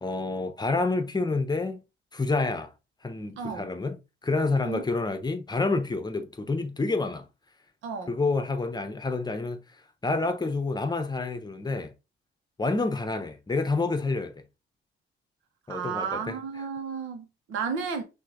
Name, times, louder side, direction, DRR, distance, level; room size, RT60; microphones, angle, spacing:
voice 1, 0.0-1.8 2.1-2.7 3.0-4.0 4.2-7.3 8.1-9.6 10.0-11.9 12.6-14.4 15.7-16.4, left 3 dB, 20° left, 0.8 m, -28 dB
voice 2, 3.4-3.7 4.6-4.8 7.8-8.1 15.7-18.0, right 6 dB, 85° right, 1.2 m, -33 dB
6.1 x 2.7 x 3.0 m
cardioid pair, 90°, 20 cm